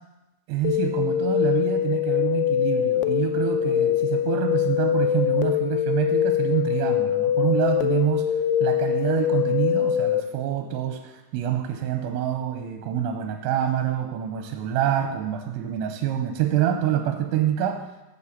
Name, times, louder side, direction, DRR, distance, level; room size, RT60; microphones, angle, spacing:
voice 1, 0.5-17.9, right 10 dB, 85° right, 5 dB, 2.9 m, -26 dB
sound 1, 0.6-10.2, left 10 dB, 80° left, 2.9 m, -23 dB
6.9 x 6.9 x 7.3 m, 1.0 s
omnidirectional pair, 5.6 m